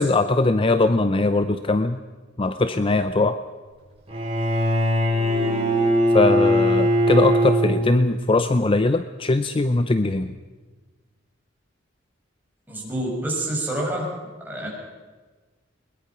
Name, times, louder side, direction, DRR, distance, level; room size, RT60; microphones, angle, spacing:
voice 1, 0.0-2.0 2.4-3.4 6.1-10.3, left 2 dB, 30° left, 11 dB, 0.6 m, -21 dB
Bowed string instrument, 4.1-8.2, equal, 30° right, 6.1 m, -20 dB
voice 2, 12.7-14.1 14.4-14.7, right 1 dB, 10° right, -3 dB, 6.3 m, -27 dB
21.5 x 20.5 x 5.9 m, 1.4 s
head